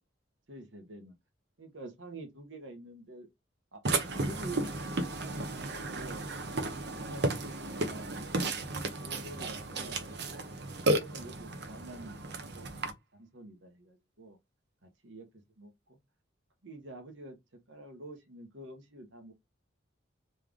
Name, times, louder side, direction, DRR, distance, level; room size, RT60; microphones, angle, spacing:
voice 1, 0.5-1.1 1.6-3.3 3.7-3.8 4.1-4.7 5.2-6.2 7.0-8.7 9.0-10.4 11.0-14.4 14.8-16.0 16.6-17.4 17.7-19.3, right 2 dB, 70° right, 1.2 m, -48 dB
Burping eructation, 3.8-12.9, right 2 dB, 55° right, 0.8 m, -34 dB
3.6 x 3.3 x 3.5 m
head